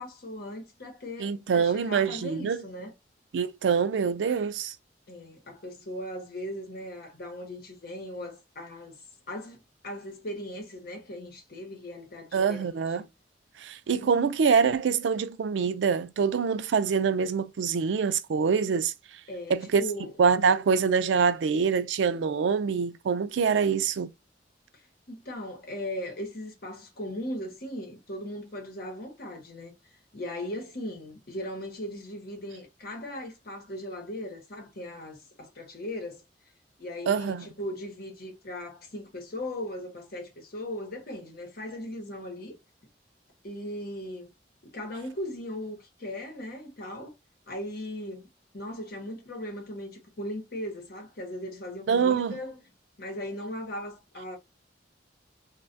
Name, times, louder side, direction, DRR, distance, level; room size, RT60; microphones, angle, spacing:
voice 1, 0.0-2.9 5.1-8.9 9.3-12.8 14.0-14.1 19.3-20.1 25.1-29.7 30.1-36.2 36.8-42.6 43.4-44.3 44.7-47.1 47.5-48.3 48.5-52.6 53.0-54.4, left 1 dB, 55° left, 1.0 m, -38 dB
voice 2, 1.2-2.6 3.3-4.7 12.3-13.1 13.6-18.9 19.5-19.8 20.2-24.1 37.1-37.5 51.9-52.4, right 6 dB, 85° right, 0.4 m, -25 dB
3.1 x 2.2 x 2.5 m
head